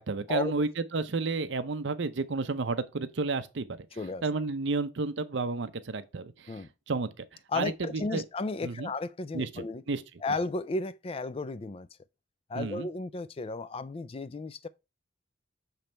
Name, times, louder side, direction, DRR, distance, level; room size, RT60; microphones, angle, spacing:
voice 1, 0.0-3.8 4.2-7.2 7.5-8.2 8.6-8.9 9.3-10.0 12.5-12.9, right 3 dB, 70° right, 0.6 m, -31 dB
voice 2, 3.9-4.2 6.5-6.7 7.5-9.8 10.2-11.9 12.5-14.7, left 3 dB, 30° left, 0.4 m, -34 dB
6.8 x 3.2 x 4.4 m
head